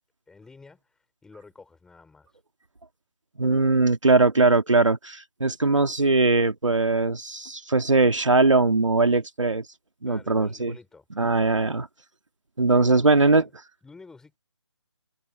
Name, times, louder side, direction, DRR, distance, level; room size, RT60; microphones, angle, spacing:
voice 1, 0.3-2.4 10.1-11.4 12.7-13.5 13.8-14.4, left 4 dB, 5° left, 5.5 m, -49 dB
voice 2, 3.4-9.6 10.0-10.7 11.2-11.9 12.6-13.4, right 3 dB, 80° right, 2.2 m, -20 dB
figure-of-eight pair, 155°, 16 cm